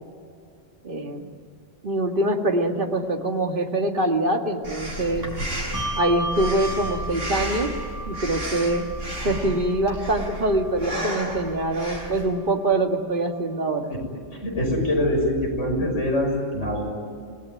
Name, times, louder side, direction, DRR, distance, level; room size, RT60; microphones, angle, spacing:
voice 1, 0.8-1.2 1.8-5.3 6.0-7.7 8.1-8.9 9.2-13.9 15.8-15.9, right 1 dB, 40° right, 4 dB, 2.1 m, -24 dB
Breathing, 4.6-12.3, right 1 dB, 80° right, 6.4 m, -33 dB
Bell, 5.7-12.6, right 1 dB, 15° right, 5.6 m, -35 dB
voice 2, 14.4-16.8, left 1 dB, 70° left, 0 dB, 6.8 m, -24 dB
26.5 x 19.0 x 9.5 m, 2.4 s
omnidirectional pair, 1.3 m